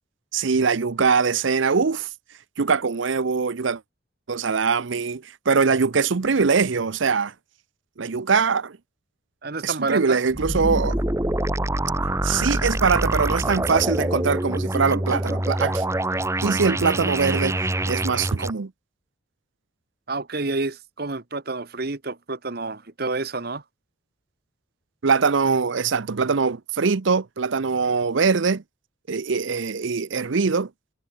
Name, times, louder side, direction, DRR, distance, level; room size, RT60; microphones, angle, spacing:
voice 1, 0.3-2.1 2.6-3.8 4.3-7.3 8.0-8.8 9.6-11.0 12.2-15.8 16.4-17.6 17.9-18.7 25.0-28.6 29.1-30.7, right 5 dB, 70° right, 0.7 m, -22 dB
voice 2, 9.4-10.2 20.1-23.6, right 3 dB, 50° right, 1.2 m, -29 dB
sound 1, 10.3-18.5, right 1 dB, 15° right, 1.2 m, -25 dB
head